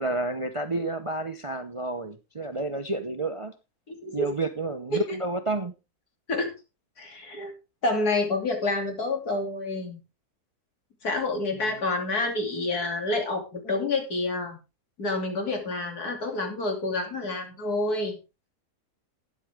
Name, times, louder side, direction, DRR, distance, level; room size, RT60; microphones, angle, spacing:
voice 1, 0.0-3.5 4.1-5.7, right 2 dB, 30° right, 9 dB, 0.6 m, -30 dB
voice 2, 3.9-4.3 4.9-5.2 6.3-6.5 7.0-7.5 7.8-10.0 11.0-14.6 15.0-18.2, left 2 dB, 75° left, 3 dB, 3.4 m, -28 dB
13.0 x 9.9 x 3.6 m, 0.29 s
omnidirectional pair, 1.6 m